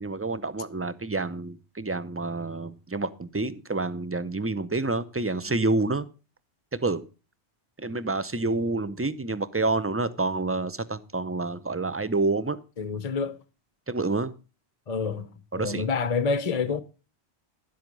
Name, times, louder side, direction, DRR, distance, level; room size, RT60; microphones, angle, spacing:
voice 1, 0.0-6.1 6.8-7.0 7.8-12.6 13.9-14.3 15.5-15.9, right 3 dB, 15° right, 0.5 m, -28 dB
voice 2, 12.8-13.4 14.9-15.3 15.5-16.8, left 5 dB, 40° left, 0.8 m, -27 dB
11.0 x 7.8 x 5.2 m
omnidirectional pair, 1.2 m